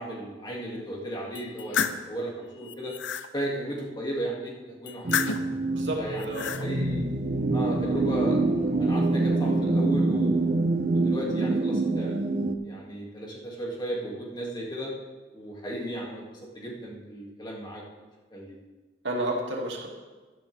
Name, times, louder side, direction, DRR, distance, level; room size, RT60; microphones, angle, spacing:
voice 1, 0.0-2.9 3.3-5.3 6.0-7.1 7.5-8.4 8.8-10.4 10.9-12.2 12.6-14.9 15.3-17.8 18.3-18.6, right 1 dB, 25° left, -3 dB, 2.2 m, -35 dB
sound 1, 1.3-2.0 2.6-3.3 4.9-5.6 6.1-6.6, left 7 dB, 80° left, 0.6 m, -30 dB
sound 2, 5.0-12.5, right 2 dB, 40° right, 0.7 m, -26 dB
voice 2, 5.7-6.6 19.0-19.9, right 1 dB, 70° right, -2 dB, 2.4 m, -31 dB
12.5 x 11.0 x 3.4 m, 1.3 s
head